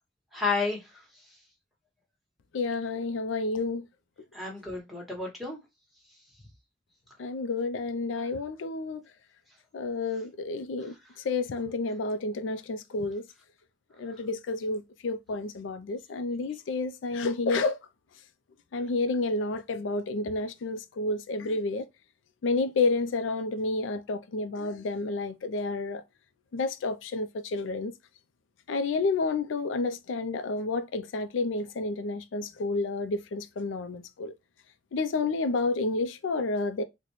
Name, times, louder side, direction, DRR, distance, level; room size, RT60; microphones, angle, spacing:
voice 1, 0.3-1.0 4.3-5.6 10.8-10.9, left 4 dB, ahead, 1.0 m, -31 dB
voice 2, 2.5-3.9 7.2-9.0 9.7-11.0 11.2-13.3 14.0-17.8 18.7-21.9 22.4-26.0 26.5-27.9 28.7-34.3 34.9-36.8, left 3 dB, 90° left, 0.4 m, -30 dB
4.0 x 2.1 x 3.0 m
head